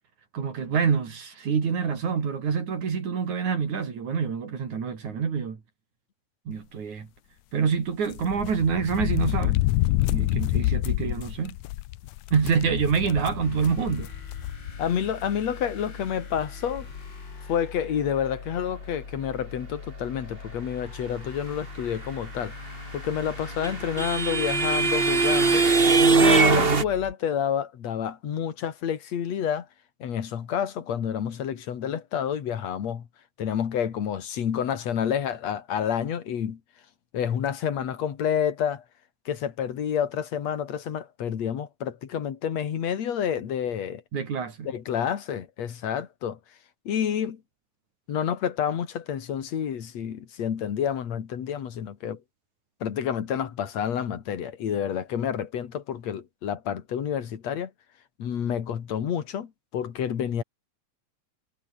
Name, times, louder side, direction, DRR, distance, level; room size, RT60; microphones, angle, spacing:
voice 1, 0.3-5.6 6.5-7.1 7.5-9.6 10.1-11.6 12.3-14.1 44.1-44.7, right 6 dB, 80° right, 4.8 m, -26 dB
sound 1, 8.1-14.8 15.2-15.3 16.4-16.5 16.7-17.0, left 18 dB, 85° left, 2.0 m, -28 dB
sound 2, 13.4-27.1, left 5 dB, 40° left, 3.5 m, -42 dB
voice 2, 14.8-16.9 17.5-22.5 22.9-25.7 26.2-29.7 30.0-33.1 33.4-36.6 37.1-38.8 39.3-44.0 44.6-46.4 46.9-47.4 48.1-52.2 52.8-57.7 58.2-60.4, left 8 dB, 65° left, 3.2 m, -29 dB
sound 3, 23.0-26.8, right 4 dB, 25° right, 1.5 m, -21 dB
omnidirectional pair, 3.4 m